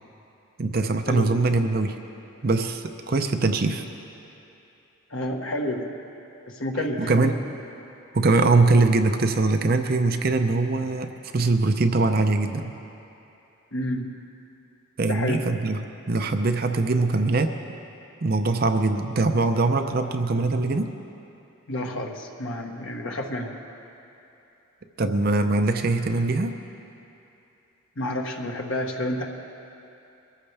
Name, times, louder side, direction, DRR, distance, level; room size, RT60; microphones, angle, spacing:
voice 1, 0.6-2.0 2.4-3.8 7.0-7.3 8.1-12.7 15.0-15.8 16.1-17.6 18.2-20.9 25.0-26.6, right 3 dB, 45° right, 7 dB, 0.6 m, -22 dB
voice 2, 5.1-5.9 6.5-7.3 13.7-14.1 15.1-15.4 21.7-23.6 28.0-29.2, left 1 dB, 70° left, 1 dB, 1.4 m, -29 dB
22.5 x 14.0 x 3.4 m, 2.8 s
head